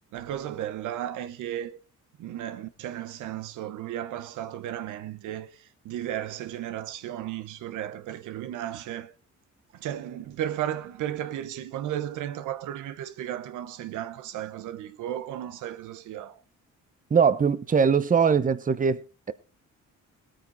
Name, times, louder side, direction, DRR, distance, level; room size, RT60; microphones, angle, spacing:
voice 1, 0.1-1.8 2.2-9.1 9.7-16.4, right 11 dB, 85° right, 1.0 m, -34 dB
voice 2, 17.1-19.3, right 6 dB, 25° right, 0.8 m, -22 dB
17.5 x 9.0 x 4.0 m
cardioid pair, 90°, 30 cm